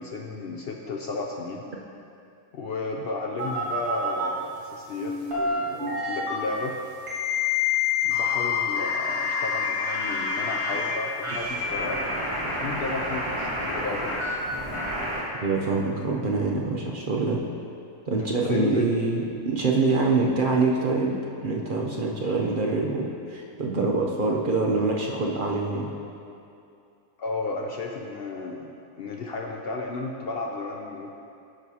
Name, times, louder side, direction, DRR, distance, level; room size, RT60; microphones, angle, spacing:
voice 1, 0.0-1.6 2.5-6.7 8.0-12.0 12.6-14.1 18.2-18.9 27.2-31.1, left 3 dB, 75° left, 1 dB, 0.5 m, -33 dB
sound 1, 3.4-4.3 5.0-6.4 7.1-10.9 11.2-15.2, left 4 dB, 20° right, 1.7 m, -28 dB
voice 2, 15.4-17.4 18.1-25.9, right 3 dB, 50° right, -1 dB, 0.6 m, -25 dB
12.0 x 6.3 x 2.8 m, 2.6 s
omnidirectional pair, 1.6 m